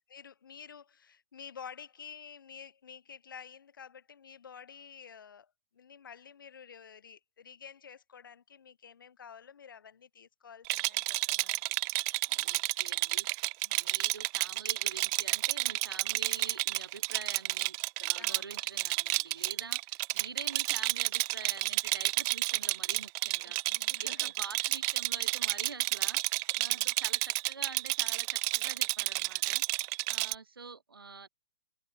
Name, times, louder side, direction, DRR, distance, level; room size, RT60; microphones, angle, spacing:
voice 1, 0.0-11.6 13.4-13.8 18.2-18.6 23.4-24.7 26.5-26.9, left 7 dB, 60° left, 6.5 m, -51 dB
Rattle, 10.7-30.4, right 31 dB, 30° right, 0.9 m, -31 dB
voice 2, 12.3-13.3 13.7-29.6 30.1-31.3, right 4 dB, 70° right, 2.1 m, -46 dB
figure-of-eight pair, 120°, 12 cm